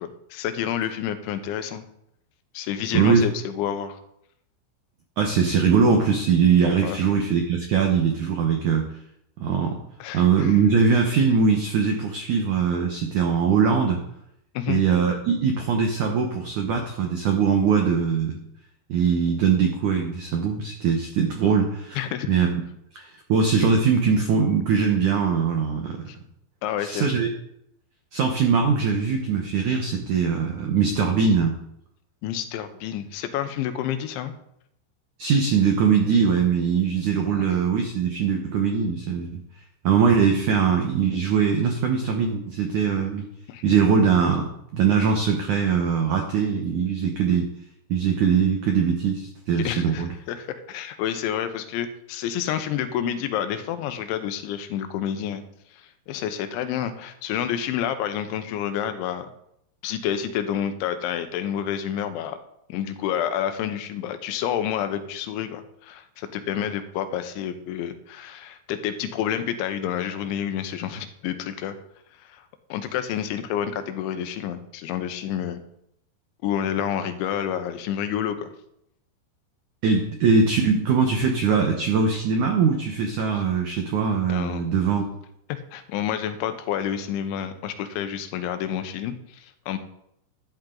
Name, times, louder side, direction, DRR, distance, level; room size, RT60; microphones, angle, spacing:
voice 1, 0.0-1.8 2.6-4.0 6.8-7.0 10.0-10.6 14.6-14.9 22.0-22.3 26.6-27.2 32.2-34.3 37.3-37.5 43.5-43.6 49.6-55.4 55.7-59.3 59.8-62.4 62.7-71.8 72.2-72.5 72.7-75.6 76.4-78.5 84.3-84.6 85.5-89.8, left 9 dB, 85° left, 9 dB, 3.3 m, -29 dB
voice 2, 5.2-8.9 9.4-9.8 10.1-14.0 14.7-18.4 18.9-22.0 22.3-22.5 22.9-26.1 26.8-27.3 28.1-31.6 35.2-39.3 39.8-43.3 43.6-47.5 47.9-50.1 79.8-85.1, right 6 dB, 80° right, 3 dB, 1.7 m, -21 dB
12.0 x 11.5 x 3.9 m, 0.77 s
omnidirectional pair, 5.2 m